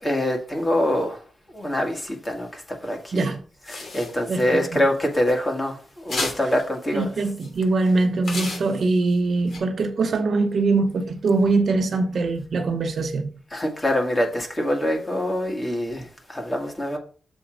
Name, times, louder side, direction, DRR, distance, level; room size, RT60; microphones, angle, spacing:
voice 1, 0.0-1.2 1.5-3.3 3.7-7.1 13.5-17.0, left 1 dB, 20° left, 1.8 m, -25 dB
sound 1, 3.7-4.6 5.1-5.3 6.1-6.6 7.4-7.6 8.2-9.1 9.5-9.6, left 2 dB, 60° left, 2.9 m, -32 dB
voice 2, 6.9-13.3, right 3 dB, 55° right, 0.9 m, -22 dB
7.1 x 4.4 x 5.1 m
wide cardioid pair, 135°, 0 cm